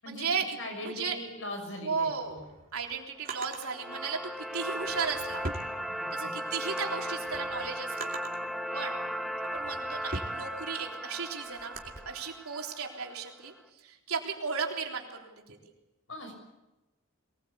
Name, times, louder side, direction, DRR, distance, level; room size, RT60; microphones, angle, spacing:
voice 1, 0.1-0.6 0.8-1.2 1.8-2.4 2.7-5.4 6.1-8.1 8.7-9.0 9.5-11.8 12.0-13.5 13.8-15.6, right 5 dB, 90° right, 1 dB, 3.7 m, -35 dB
voice 2, 0.6-2.4 5.9-6.5 16.1-16.3, left 1 dB, 65° left, 5 dB, 6.5 m, -41 dB
Drawer open or close, 2.1-3.7 4.7-6.4 6.8-8.5 9.2-12.0, right 2 dB, 40° right, 2.9 m, -42 dB
sound 1, 3.2-13.3, equal, ahead, 0.9 m, -37 dB
22.5 x 20.0 x 8.4 m, 1.0 s
head